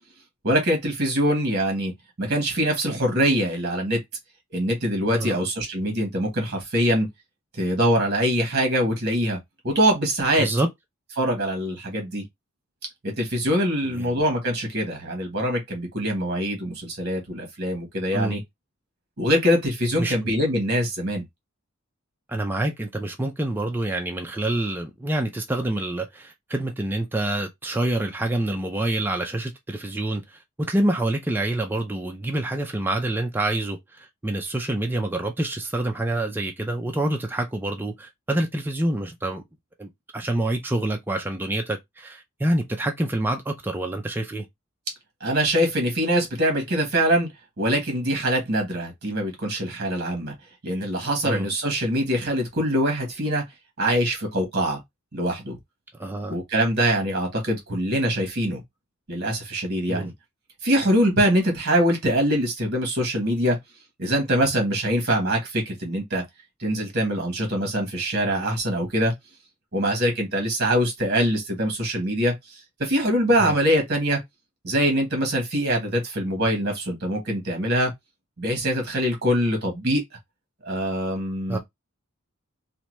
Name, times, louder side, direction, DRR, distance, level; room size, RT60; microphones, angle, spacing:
voice 1, 0.4-1.9 2.2-4.0 4.5-7.1 7.6-9.4 9.6-10.5 11.2-12.2 13.0-18.4 19.2-21.2 45.2-47.3 47.6-50.3 50.6-53.4 53.8-54.8 55.1-55.6 56.3-58.6 59.1-60.1 60.6-63.6 64.0-66.2 66.6-69.1 69.7-74.2 74.6-77.9 78.4-80.0 80.6-81.6, equal, 50° right, 1.2 m, -23 dB
voice 2, 22.3-30.2 30.6-39.4 39.8-44.5 51.2-51.5 56.0-56.4 59.9-60.1 73.4-73.6 81.5-81.6, right 1 dB, 10° right, 0.4 m, -27 dB
2.8 x 2.2 x 3.0 m
head